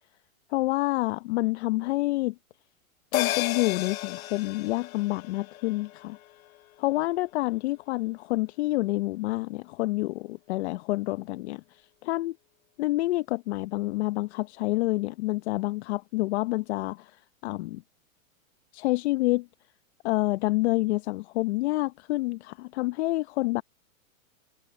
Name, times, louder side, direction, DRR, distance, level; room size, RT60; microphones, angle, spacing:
voice 1, 0.5-2.3 3.1-6.2 6.8-12.4 12.8-17.2 17.4-17.8 18.7-19.5 20.0-23.6, left 20 dB, 50° left, 0.9 m, -28 dB
sound 1, 3.1-7.8 8.2-8.3, left 15 dB, 85° left, 0.5 m, -34 dB
hypercardioid pair, 135°, 41 cm